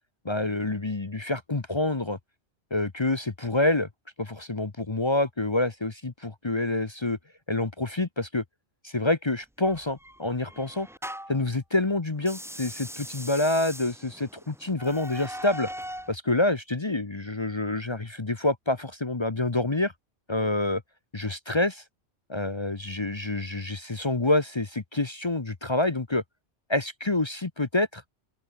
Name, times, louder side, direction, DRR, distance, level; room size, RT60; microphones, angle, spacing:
voice 1, 0.2-2.2 2.7-3.9 4.2-7.2 7.5-8.4 8.8-10.9 11.3-15.7 16.1-19.9 20.3-20.8 21.1-21.8 22.3-26.2 26.7-27.9, left 2 dB, 25° left, 1.0 m, -27 dB
sound 1, 9.6-11.5 12.2-16.1, equal, 5° right, 0.8 m, -40 dB
open air
omnidirectional pair, 1.2 m